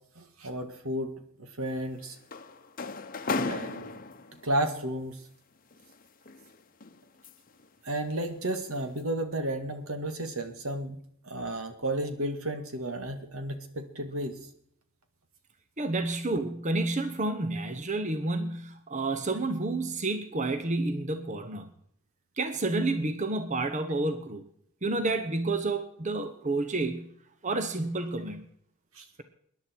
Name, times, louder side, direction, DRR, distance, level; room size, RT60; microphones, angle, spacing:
voice 1, 0.2-2.2 3.5-4.0 4.4-5.2 7.8-11.0 11.2-14.4 28.9-29.1, right 1 dB, 75° right, 7 dB, 2.1 m, -33 dB
sound 1, 1.6-4.6 5.7-7.6 8.1-8.3 8.8-9.0, left 3 dB, 40° left, 0.9 m, -36 dB
voice 2, 15.8-21.7 22.4-24.5 24.8-27.1 27.4-28.4, right 2 dB, 35° right, 9 dB, 1.0 m, -30 dB
21.5 x 10.5 x 4.6 m, 0.67 s
head